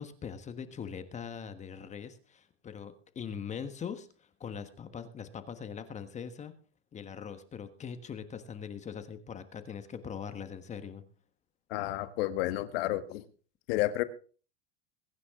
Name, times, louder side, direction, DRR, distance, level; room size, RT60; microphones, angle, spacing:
voice 1, 0.0-6.5 6.9-11.0, left 7 dB, 20° left, 10 dB, 1.4 m, -41 dB
voice 2, 11.7-13.2 13.7-14.0, left 15 dB, 65° left, 11 dB, 1.5 m, -31 dB
22.0 x 9.8 x 3.7 m, 0.39 s
supercardioid pair, 135°, 33 cm